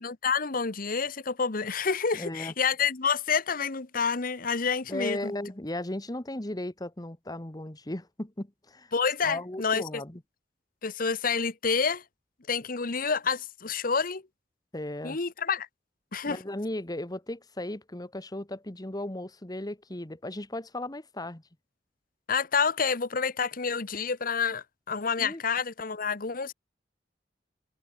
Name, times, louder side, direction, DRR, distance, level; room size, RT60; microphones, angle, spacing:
voice 1, 0.0-5.3 8.9-10.0 10.8-12.0 12.5-14.2 15.0-15.7 16.1-16.4 22.3-26.5, left 5 dB, 50° left, 1.1 m, -28 dB
voice 2, 2.1-2.5 4.9-8.9 9.2-10.2 14.7-15.2 16.2-21.4 25.2-25.4, left 1 dB, 20° left, 1.5 m, -36 dB
head